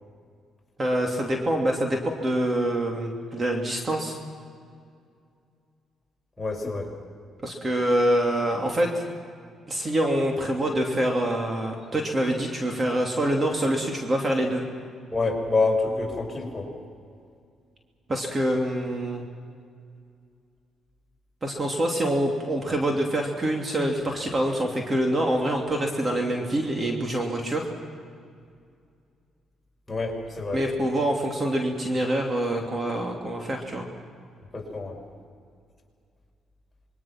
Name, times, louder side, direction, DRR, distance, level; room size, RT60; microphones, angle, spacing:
voice 1, 0.8-4.2 7.4-9.0 9.7-14.7 18.1-19.2 21.4-27.7 30.5-33.9, right 1 dB, 30° right, 1 dB, 2.9 m, -25 dB
voice 2, 6.4-6.9 15.1-16.7 29.9-30.6 34.5-35.0, left 3 dB, 20° left, -1 dB, 5.7 m, -27 dB
27.0 x 22.5 x 6.1 m, 2.3 s
cardioid pair, 90°, 0 cm